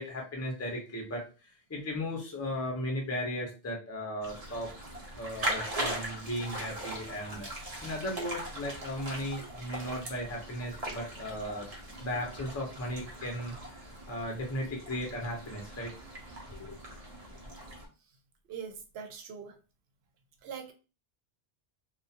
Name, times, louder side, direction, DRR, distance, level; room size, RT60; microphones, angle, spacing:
voice 1, 0.0-4.7 5.1-7.5 7.8-11.7 12.0-13.8 14.1-15.9 16.3-16.8, equal, 20° left, 0 dB, 0.6 m, -36 dB
sound 1, 4.2-17.9, right 1 dB, 45° right, 0.7 m, -40 dB
voice 2, 18.5-19.5 20.4-20.7, right 7 dB, 85° right, 6 dB, 0.8 m, -42 dB
2.4 x 2.2 x 2.7 m, 0.32 s
omnidirectional pair, 1.0 m